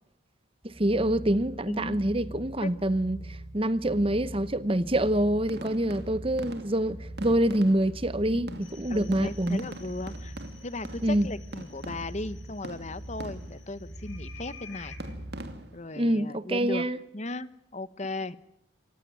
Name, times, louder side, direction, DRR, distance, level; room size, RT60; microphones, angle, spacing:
sound 1, 0.6-15.6, right 1 dB, 10° left, 3.1 m, -43 dB
voice 1, 0.6-9.6 11.0-11.3 16.0-17.0, right 1 dB, 25° right, 0.9 m, -26 dB
voice 2, 1.7-2.1 2.6-2.7 8.3-10.3 10.6-15.0 15.7-16.9 17.1-18.4, left 2 dB, 35° left, 1.0 m, -37 dB
sound 2, 5.4-8.1 8.5-12.3 12.6-13.7 15.0-15.9, right 1 dB, 50° right, 2.6 m, -43 dB
sound 3, 8.6-15.0, left 6 dB, 70° left, 5.3 m, -52 dB
28.5 x 16.0 x 9.0 m
head